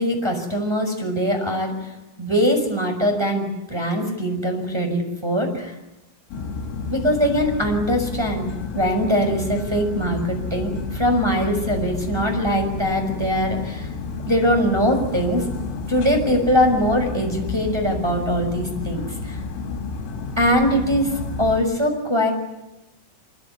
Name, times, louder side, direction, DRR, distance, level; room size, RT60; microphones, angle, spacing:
voice 1, 0.0-1.7 2.2-5.7 6.9-13.9 14.2-15.5 15.9-19.4 20.4-21.1 21.4-22.3, equal, 5° right, 2 dB, 5.6 m, -22 dB
sound 1, 6.3-21.6, left 4 dB, 85° left, 6.0 m, -31 dB
25.0 x 23.5 x 9.8 m, 0.96 s
omnidirectional pair, 5.9 m